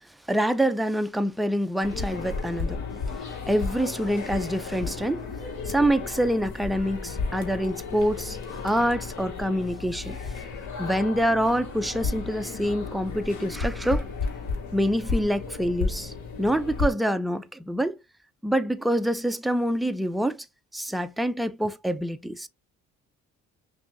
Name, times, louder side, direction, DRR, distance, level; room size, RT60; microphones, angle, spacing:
voice 1, 0.3-2.8 3.5-5.3 5.7-8.4 8.6-10.2 10.8-14.1 14.7-16.1 16.4-18.0 18.4-20.4 20.7-22.5, equal, ahead, 0.4 m, -26 dB
sound 1, 1.8-16.9, left 4 dB, 70° left, 1.7 m, -33 dB
5.9 x 2.7 x 2.5 m
cardioid pair, 90°, 30 cm